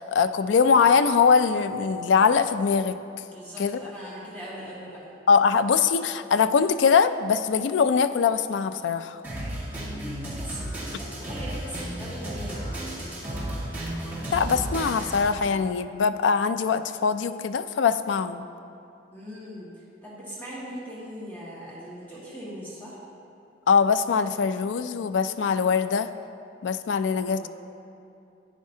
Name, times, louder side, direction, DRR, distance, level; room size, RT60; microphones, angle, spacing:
voice 1, 0.0-3.0 3.6-3.8 5.3-9.2 14.3-18.5 23.7-26.1 26.6-27.5, left 6 dB, 90° left, 12 dB, 0.4 m, -22 dB
voice 2, 3.3-5.1 9.8-10.7 11.2-12.7 19.1-19.7 20.0-23.0 27.3-27.5, equal, 10° left, -9 dB, 1.6 m, -40 dB
Drum kit, 9.2-15.2, right 1 dB, 10° right, 2.0 m, -33 dB
11.5 x 9.2 x 2.7 m, 2.7 s
head